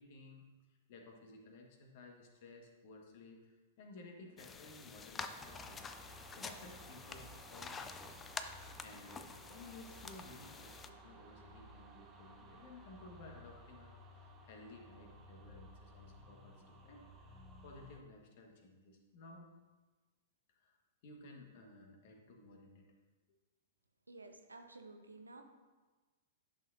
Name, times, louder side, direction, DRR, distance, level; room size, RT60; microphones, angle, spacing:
voice 1, 0.0-19.5 20.5-20.8 21.0-22.9, left 2 dB, 45° left, 2 dB, 1.4 m, -56 dB
sound 1, 4.4-10.9, left 5 dB, 15° left, 0.4 m, -48 dB
sound 2, 5.3-18.0, right 1 dB, 20° right, 1.0 m, -57 dB
voice 2, 24.1-25.4, right 2 dB, 80° right, 5 dB, 0.9 m, -53 dB
11.0 x 6.4 x 2.6 m, 1.3 s
figure-of-eight pair, 105°, 0 cm